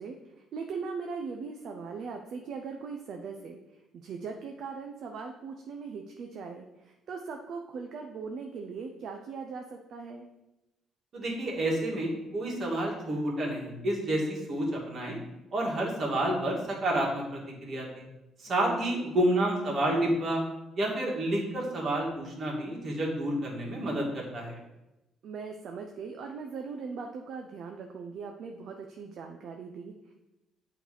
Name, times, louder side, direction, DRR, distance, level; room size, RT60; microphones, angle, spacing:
voice 1, 0.0-3.6 3.9-10.3 18.5-19.1 25.2-30.1, right 5 dB, 60° right, 3 dB, 0.6 m, -40 dB
voice 2, 11.1-15.2 15.5-18.0 18.4-20.4 20.8-24.6, right 1 dB, 45° right, -2 dB, 1.9 m, -29 dB
7.8 x 3.3 x 4.9 m, 0.98 s
cardioid pair, 115°, 0 cm